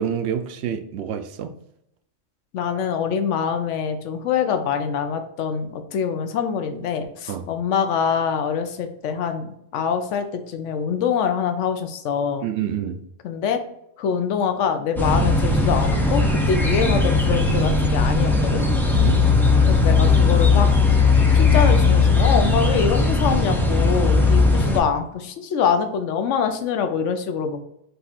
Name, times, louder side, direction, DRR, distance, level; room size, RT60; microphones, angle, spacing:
voice 1, 0.0-1.5 7.3-7.4 12.4-13.0 18.9-19.2, right 9 dB, 65° right, 8 dB, 0.8 m, -27 dB
voice 2, 2.5-12.5 13.2-13.6 14.0-18.6 19.7-20.7 21.3-27.6, left 7 dB, 75° left, 8 dB, 1.0 m, -24 dB
sound 1, 15.0-24.8, left 3 dB, 5° left, 0.4 m, -18 dB
5.2 x 2.5 x 4.2 m, 0.78 s
omnidirectional pair, 1.3 m